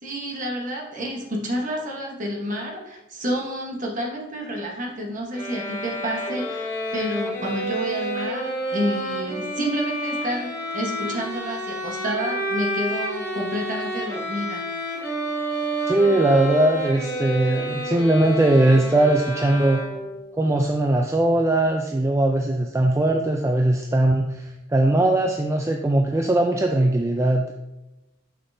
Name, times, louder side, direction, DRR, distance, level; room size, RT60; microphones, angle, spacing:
voice 1, 0.0-14.6, equal, 40° right, 0 dB, 1.2 m, -29 dB
sound 1, 5.3-20.3, right 1 dB, 15° left, 2.1 m, -29 dB
voice 2, 15.9-19.8 20.4-27.5, right 1 dB, 15° right, 2 dB, 0.3 m, -20 dB
6.4 x 6.0 x 2.7 m, 0.97 s
head